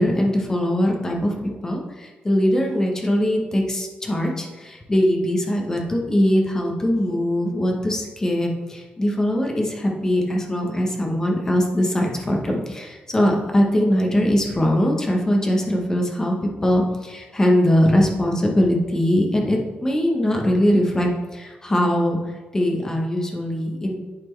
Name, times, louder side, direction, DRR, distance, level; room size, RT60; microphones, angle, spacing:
voice 1, 0.0-16.4 16.6-22.2 22.5-24.0, equal, 15° left, 0 dB, 1.0 m, -21 dB
10.5 x 4.2 x 3.2 m, 1.3 s
wide cardioid pair, 155°, 3 cm